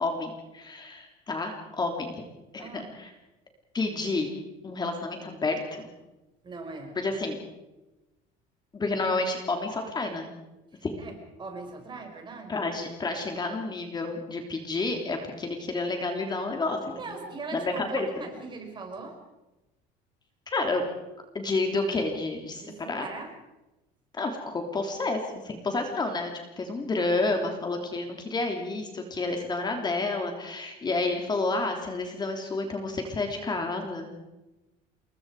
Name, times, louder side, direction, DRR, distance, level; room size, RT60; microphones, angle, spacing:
voice 1, 0.0-2.2 2.5-3.1 3.7-4.3 4.6-5.9 6.9-7.4 8.7-10.3 10.8-11.0 12.5-17.2 17.5-18.1 20.5-20.9 21.3-23.1 24.1-34.1, left 3 dB, 25° left, 4 dB, 3.3 m, -30 dB
voice 2, 6.4-6.9 10.7-12.6 16.8-19.2 22.6-23.3, right 3 dB, 25° right, 3 dB, 5.3 m, -40 dB
28.0 x 22.0 x 4.9 m, 1.0 s
cardioid pair, 135°, 18 cm